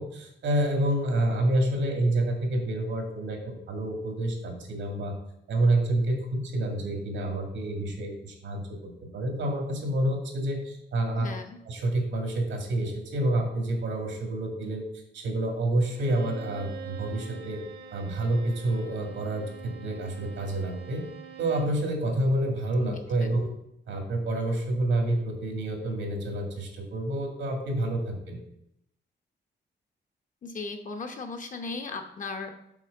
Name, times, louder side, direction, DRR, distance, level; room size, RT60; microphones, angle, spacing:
voice 1, 0.0-5.2 5.5-11.3 11.7-14.8 15.1-17.6 17.9-21.0 21.4-23.5 23.9-28.4, right 1 dB, 85° right, 1 dB, 2.0 m, -28 dB
voice 2, 11.2-11.6 22.8-23.0 30.4-32.5, left 3 dB, 45° left, 5 dB, 0.9 m, -36 dB
Bowed string instrument, 15.9-21.8, right 7 dB, 65° right, 1.1 m, -44 dB
6.2 x 4.3 x 6.5 m, 0.79 s
wide cardioid pair, 160°, 19 cm